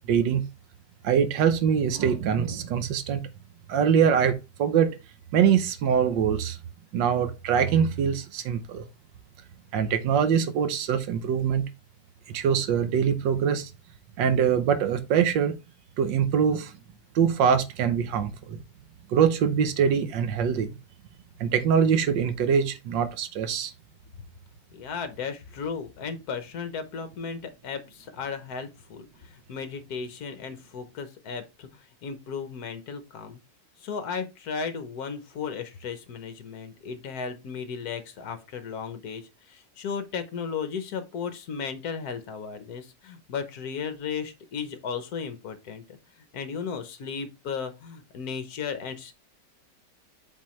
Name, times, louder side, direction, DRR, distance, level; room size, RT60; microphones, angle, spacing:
voice 1, 0.1-0.4 1.0-3.2 3.7-4.9 5.3-6.6 6.9-8.8 9.7-11.6 12.3-13.7 14.2-15.6 16.0-16.7 17.1-18.6 19.1-20.7 21.4-23.7, right 7 dB, 85° right, 1.5 m, -23 dB
voice 2, 24.7-33.4 33.8-46.0 46.3-49.1, left 6 dB, 60° left, 1.4 m, -35 dB
7.9 x 4.3 x 3.1 m
omnidirectional pair, 1.9 m